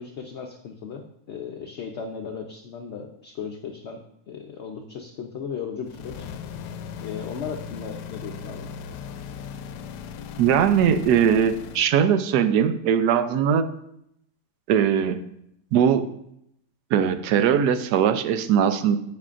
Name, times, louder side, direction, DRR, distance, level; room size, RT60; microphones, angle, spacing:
voice 1, 0.0-6.3 7.0-8.7, left 6 dB, 60° left, 3 dB, 0.7 m, -36 dB
sound 1, 5.8-11.9, left 7 dB, 85° left, 1.2 m, -38 dB
voice 2, 10.4-13.7 14.7-15.2 15.7-16.1 16.9-19.0, right 8 dB, 80° right, 10 dB, 1.2 m, -20 dB
10.5 x 8.3 x 2.5 m, 0.77 s
omnidirectional pair, 1.7 m